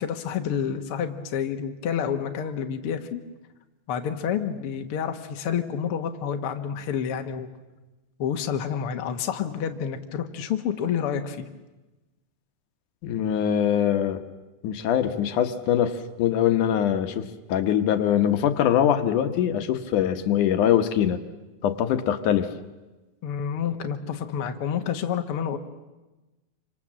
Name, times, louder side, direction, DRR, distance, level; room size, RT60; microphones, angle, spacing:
voice 1, 0.0-3.2 3.9-7.5 8.2-11.5 23.2-25.6, left 8 dB, 55° left, 5 dB, 2.0 m, -29 dB
voice 2, 13.0-14.2 14.6-21.2 21.6-22.5, left 10 dB, 80° left, 9 dB, 2.6 m, -23 dB
27.0 x 25.5 x 7.5 m, 1.1 s
omnidirectional pair, 3.6 m